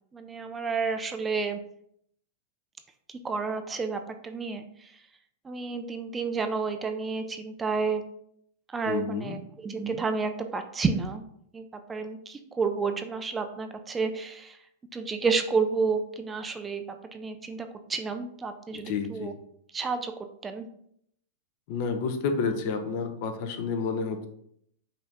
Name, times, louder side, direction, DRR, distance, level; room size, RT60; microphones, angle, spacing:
voice 1, 0.1-1.6 3.1-4.9 5.4-8.0 8.7-11.2 11.5-14.6 14.9-16.8 17.1-19.3 19.7-20.1 20.4-20.7, right 4 dB, 15° right, 7 dB, 0.4 m, -30 dB
voice 2, 8.9-9.4 18.7-19.3 21.7-24.2, left 5 dB, 55° left, 7 dB, 0.7 m, -30 dB
5.4 x 2.8 x 3.4 m, 0.70 s
supercardioid pair, 135°, 0 cm